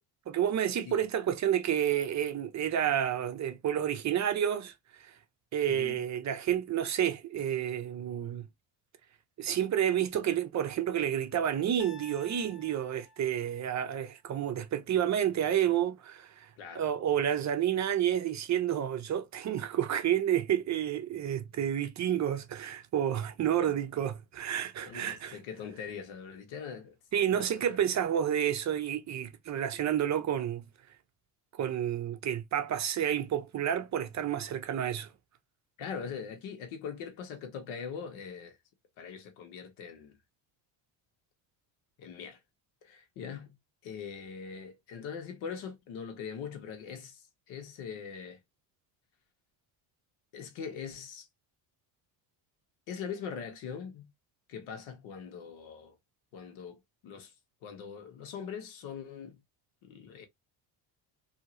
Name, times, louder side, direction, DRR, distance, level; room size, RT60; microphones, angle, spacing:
voice 1, 0.3-5.1 5.5-8.5 9.4-16.5 16.7-25.4 27.1-30.6 31.6-35.1, right 10 dB, 35° right, 0.6 m, -30 dB
voice 2, 5.7-6.0 16.6-16.9 23.6-23.7 24.8-26.9 27.2-27.9 35.8-38.6 39.0-40.2 42.0-42.4 42.8-43.5 43.8-48.4 50.3-51.3 52.9-54.1 54.5-56.0 56.3-57.3 57.6-59.4 59.8-60.3, left 6 dB, 85° left, 1.2 m, -42 dB
sound 1, 11.8-13.9, left 1 dB, 30° left, 1.7 m, -53 dB
2.9 x 2.8 x 2.7 m
cardioid pair, 110°, 46 cm